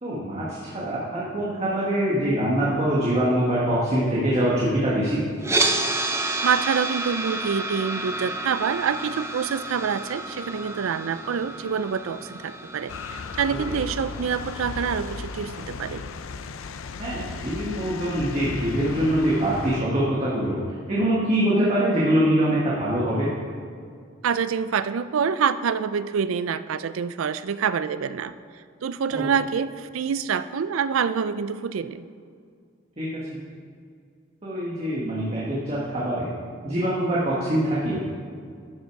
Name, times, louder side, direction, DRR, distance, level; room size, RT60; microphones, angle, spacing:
voice 1, 0.0-5.2 13.5-13.8 17.0-20.6 20.9-23.3 29.1-29.2 33.0-33.2 34.4-36.3 36.6-38.0, right 1 dB, 30° right, -7 dB, 1.5 m, -24 dB
sound 1, 5.4-15.5, right 2 dB, 15° right, 0.6 m, -30 dB
voice 2, 6.2-16.0 24.2-28.3 28.8-32.1, right 6 dB, 85° right, 14 dB, 0.4 m, -26 dB
sound 2, 12.9-19.8, left 4 dB, 80° left, 0.5 m, -36 dB
12.0 x 6.4 x 4.7 m, 2.2 s
head